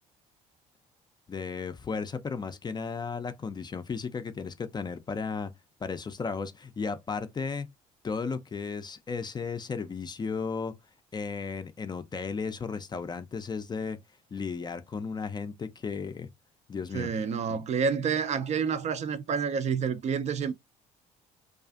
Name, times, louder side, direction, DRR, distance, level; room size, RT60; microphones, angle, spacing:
voice 1, 1.3-5.5 5.8-7.7 8.0-10.7 11.1-14.0 14.3-16.3 16.7-17.2 17.5-17.6, left 5 dB, 25° left, 0.4 m, -34 dB
voice 2, 16.9-20.5, right 6 dB, 40° right, 0.4 m, -29 dB
2.4 x 2.4 x 2.3 m
hypercardioid pair, 65°, 17 cm